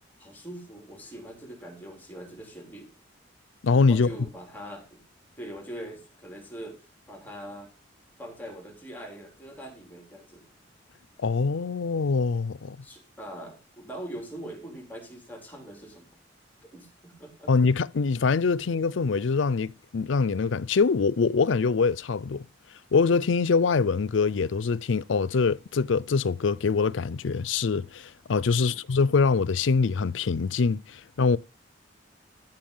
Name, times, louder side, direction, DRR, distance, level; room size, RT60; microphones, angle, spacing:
voice 1, 0.2-2.9 3.9-5.0 5.4-7.7 8.2-10.4 12.8-16.1 16.6-17.5 28.5-28.8, right 1 dB, 10° left, 3.8 m, -42 dB
voice 2, 3.6-4.1 11.2-12.8 17.5-22.5 22.9-31.4, left 4 dB, 85° left, 0.5 m, -24 dB
13.5 x 5.9 x 5.5 m
head